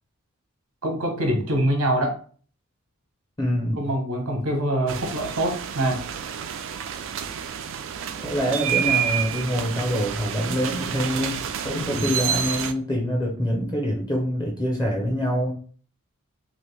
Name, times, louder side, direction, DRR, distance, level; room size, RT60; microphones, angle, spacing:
voice 1, 0.8-2.2 3.8-6.0 11.9-12.1, right 1 dB, 90° right, 2 dB, 1.1 m, -24 dB
voice 2, 3.4-3.8 8.2-15.5, equal, 20° left, -1 dB, 0.6 m, -25 dB
sound 1, 4.9-12.7, right 9 dB, 60° right, 0.3 m, -29 dB
2.9 x 2.5 x 3.3 m, 0.43 s
head